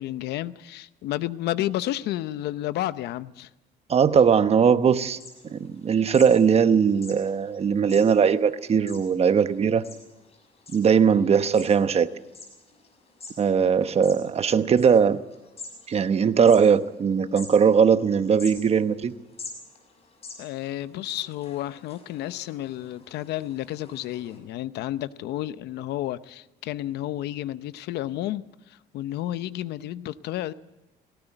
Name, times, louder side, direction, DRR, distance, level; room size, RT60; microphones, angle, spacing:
voice 1, 0.0-3.5 20.4-30.5, left 14 dB, 80° left, 15 dB, 0.8 m, -31 dB
voice 2, 3.9-5.2 5.5-9.8 10.7-12.1 13.4-15.2 15.9-19.1, right 6 dB, 35° right, 11 dB, 1.0 m, -20 dB
sound 1, 4.8-24.4, left 3 dB, 35° left, 6.3 m, -48 dB
19.0 x 17.0 x 9.0 m, 1.0 s
cardioid pair, 110°, 17 cm